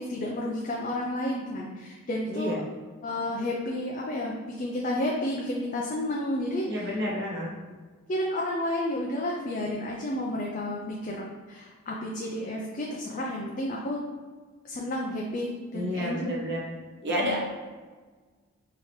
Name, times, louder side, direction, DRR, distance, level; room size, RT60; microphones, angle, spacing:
voice 1, 0.0-2.6 3.0-6.9 8.1-14.0 14.6-16.3 17.2-17.4, left 1 dB, 35° left, -2 dB, 0.4 m, -31 dB
voice 2, 6.7-7.5 15.7-16.6 17.0-17.4, equal, 50° right, -4 dB, 1.1 m, -30 dB
5.0 x 2.9 x 3.1 m, 1.4 s
head